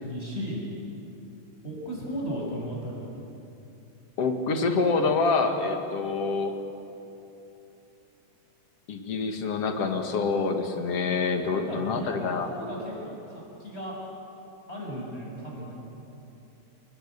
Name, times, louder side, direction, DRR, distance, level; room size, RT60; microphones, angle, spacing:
voice 1, 0.0-0.6 1.6-3.2 11.5-14.0 14.7-15.7, equal, 20° left, -3 dB, 6.9 m, -35 dB
voice 2, 4.2-6.5 8.9-12.5, left 4 dB, 55° left, 5 dB, 2.8 m, -26 dB
28.0 x 19.5 x 8.8 m, 2.8 s
omnidirectional pair, 3.3 m